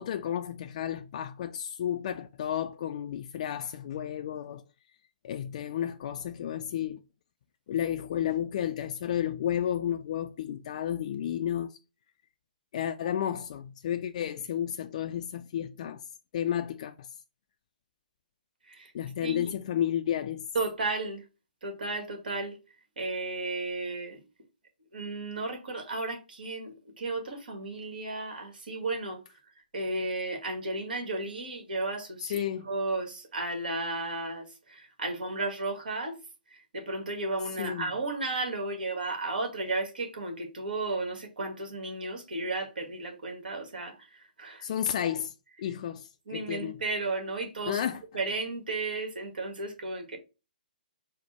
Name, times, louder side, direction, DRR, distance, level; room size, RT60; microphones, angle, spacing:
voice 1, 0.0-4.6 5.2-7.0 7.7-11.8 12.7-16.0 16.3-17.1 18.9-20.4 32.3-32.7 37.6-37.9 44.6-45.3 45.6-46.8 47.7-48.0, left 10 dB, 45° left, 0.3 m, -32 dB
voice 2, 19.2-19.5 20.5-21.2 21.6-22.6 23.0-24.2 24.9-29.2 29.7-36.2 36.5-44.6 46.3-47.8 48.1-50.2, right 2 dB, 70° right, 1.5 m, -34 dB
4.2 x 2.1 x 4.3 m
hypercardioid pair, 135°, 5 cm